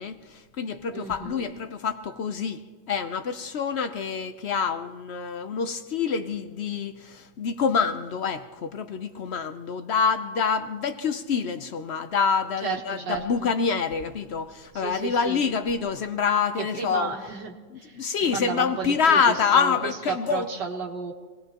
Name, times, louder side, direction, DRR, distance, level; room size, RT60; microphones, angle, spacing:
voice 1, 0.0-17.3 17.7-20.5, left 6 dB, 65° left, 0.6 m, -26 dB
voice 2, 0.9-1.4 12.6-13.5 14.8-15.4 16.7-19.7 20.1-21.1, right 5 dB, 80° right, 2.0 m, -33 dB
26.0 x 18.0 x 2.9 m
omnidirectional pair, 1.9 m